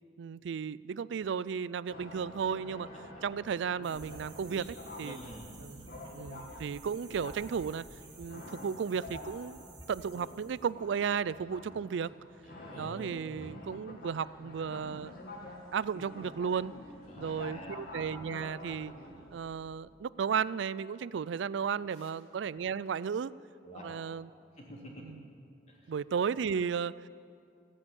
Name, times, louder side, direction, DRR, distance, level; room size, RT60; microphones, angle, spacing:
voice 1, 0.2-2.9 3.2-4.7 5.0-5.2 5.6-5.9 6.1-7.8 8.2-9.6 9.9-12.1 12.8-15.1 15.7-16.7 17.2-18.9 19.3-23.3 23.8-24.3 25.0-25.2 25.9-27.1, right 6 dB, 70° right, 19 dB, 0.4 m, -34 dB
sound 1, 1.9-19.7, left 1 dB, 55° left, 2.3 m, -48 dB
sound 2, 3.8-10.7, right 2 dB, 25° right, 2.7 m, -51 dB
voice 2, 5.0-5.5 12.4-13.2 17.1-17.8 21.9-22.1 23.6-23.8 24.6-25.0 25.7-25.9, equal, 40° left, -3 dB, 3.3 m, -48 dB
16.0 x 9.8 x 8.9 m, 2.4 s
head